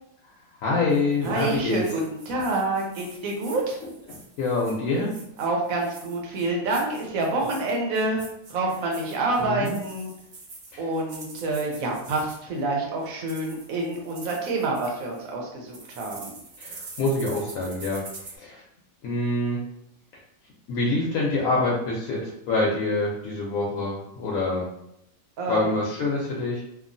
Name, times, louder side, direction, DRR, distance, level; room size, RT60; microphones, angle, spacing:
voice 1, 0.6-1.8 4.1-5.1 9.4-9.7 10.7-10.9 16.6-18.0 18.4-18.6 19.0-19.6 20.7-24.7 25.5-26.6, left 2 dB, 85° left, -4 dB, 1.0 m, -26 dB
sound 1, 0.9-12.6 13.0-15.3 15.7-18.4, right 3 dB, 60° right, 0.5 m, -45 dB
voice 2, 1.2-3.8 5.4-8.2 8.5-10.1 10.8-16.4 25.4-25.8, right 2 dB, 85° right, 0 dB, 1.1 m, -27 dB
2.9 x 2.3 x 2.5 m, 0.80 s
omnidirectional pair, 1.4 m